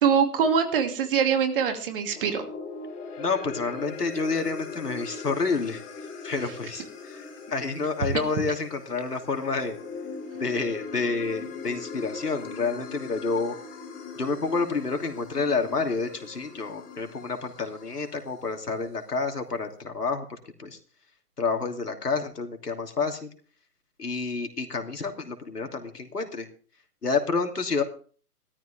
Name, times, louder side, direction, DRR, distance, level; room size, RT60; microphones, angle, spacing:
voice 1, 0.0-2.4, right 7 dB, 35° right, 6 dB, 2.5 m, -23 dB
sound 1, 2.0-18.4, left 4 dB, 15° left, 2.4 m, -40 dB
voice 2, 3.2-5.8 6.2-9.8 10.4-13.6 14.2-20.8 21.4-23.3 24.0-26.5 27.0-27.8, left 4 dB, 80° left, 5 dB, 3.0 m, -29 dB
17.0 x 13.5 x 3.5 m, 0.42 s
figure-of-eight pair, 140°, 46 cm